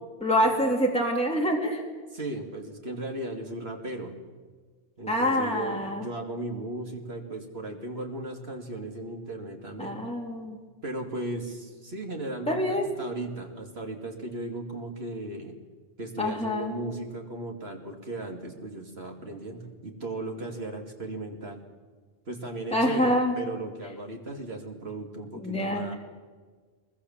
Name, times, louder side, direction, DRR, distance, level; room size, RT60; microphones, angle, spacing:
voice 1, 0.2-1.8 5.1-6.1 9.8-10.6 12.5-12.9 16.2-16.7 22.7-23.3 25.4-25.8, equal, 5° left, -1 dB, 2.8 m, -26 dB
voice 2, 2.1-4.2 5.0-10.0 10.8-15.5 16.0-21.6 22.3-26.0, right 2 dB, 65° right, 2 dB, 2.9 m, -36 dB
22.5 x 22.0 x 7.3 m, 1.4 s
omnidirectional pair, 1.2 m